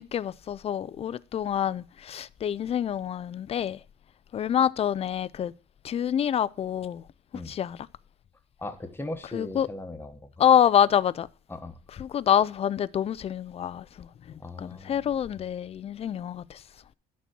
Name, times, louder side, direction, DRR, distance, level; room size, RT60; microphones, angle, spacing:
voice 1, 0.0-3.8 4.3-5.5 5.8-7.1 7.5-7.8 9.3-9.7 10.4-11.3 11.9-16.6, left 9 dB, 35° left, 0.4 m, -26 dB
voice 2, 8.6-10.3 11.5-11.8 14.4-15.0, left 2 dB, 15° left, 1.2 m, -38 dB
11.5 x 4.2 x 6.0 m
cardioid pair, 110°, 17 cm